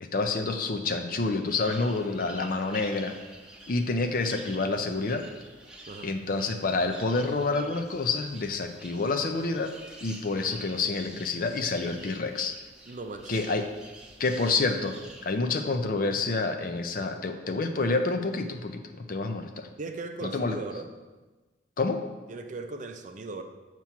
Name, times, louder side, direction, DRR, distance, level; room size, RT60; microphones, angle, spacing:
voice 1, 0.0-3.1 3.7-5.2 6.0-9.7 10.0-12.5 13.3-13.7 14.2-15.0 15.2-19.7 20.2-20.6 21.8-22.0, left 3 dB, 50° left, 6 dB, 0.5 m, -28 dB
sound 1, 1.4-15.3, right 2 dB, 5° right, 1.1 m, -49 dB
voice 2, 12.9-13.4 19.8-20.9 22.3-23.4, right 3 dB, 45° right, 6 dB, 0.5 m, -38 dB
7.4 x 3.0 x 5.7 m, 1.2 s
head